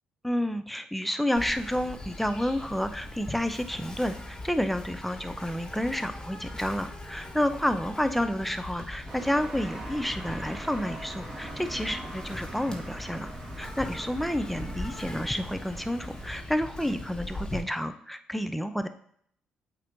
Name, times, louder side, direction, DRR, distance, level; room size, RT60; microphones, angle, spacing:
voice 1, 0.2-13.3 13.6-18.9, equal, 5° left, 9 dB, 0.6 m, -30 dB
Insect, 1.4-17.6, left 1 dB, 20° left, 1.5 m, -41 dB
sound 1, 9.1-16.4, right 2 dB, 20° right, 2.0 m, -43 dB
8.2 x 2.9 x 4.0 m, 0.65 s
hypercardioid pair, 45°, 3 cm